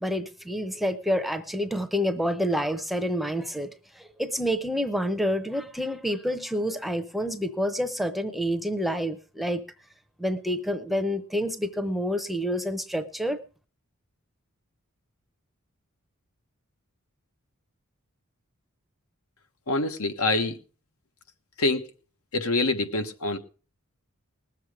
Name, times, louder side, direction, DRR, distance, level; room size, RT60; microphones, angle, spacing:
voice 1, 0.0-9.6 10.2-13.4, equal, ahead, 0.7 m, -28 dB
voice 2, 19.7-20.6 21.6-21.9 22.3-23.4, left 2 dB, 75° left, 1.3 m, -25 dB
19.5 x 7.4 x 4.9 m
head